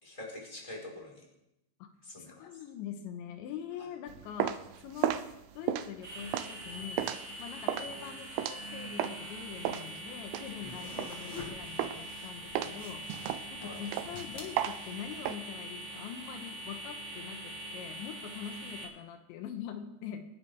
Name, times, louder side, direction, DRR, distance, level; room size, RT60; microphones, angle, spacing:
voice 1, 0.0-1.2 2.0-2.6 7.7-8.0 10.6-10.7 11.0-11.2 13.6-13.8, left 2 dB, 5° left, -3 dB, 3.9 m, -46 dB
voice 2, 2.4-5.2 5.6-13.3 13.5-20.2, left 9 dB, 85° left, 6 dB, 3.4 m, -44 dB
sound 1, 4.1-9.3 9.7-11.5 11.8-12.2 12.6-15.4, right 11 dB, 80° right, 2.5 m, -34 dB
sound 2, 6.0-18.8, right 1 dB, 50° right, 5.7 m, -43 dB
sound 3, 10.4-15.2, left 3 dB, 55° left, 1.3 m, -49 dB
27.0 x 11.0 x 3.6 m, 0.86 s
omnidirectional pair, 5.1 m